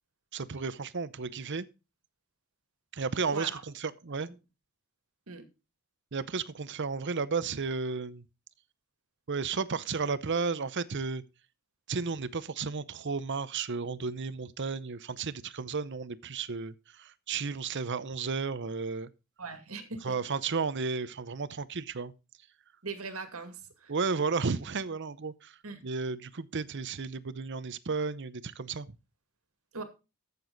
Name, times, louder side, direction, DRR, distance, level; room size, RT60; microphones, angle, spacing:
voice 1, 0.3-1.7 2.9-4.3 6.1-8.2 9.3-11.2 11.9-19.1 20.0-22.1 23.9-25.6 25.8-29.0, right 4 dB, 55° right, 0.7 m, -33 dB
voice 2, 19.4-20.2 22.8-23.9 25.6-25.8 29.7-29.8, right 4 dB, 80° right, 2.2 m, -40 dB
14.0 x 6.9 x 4.0 m
head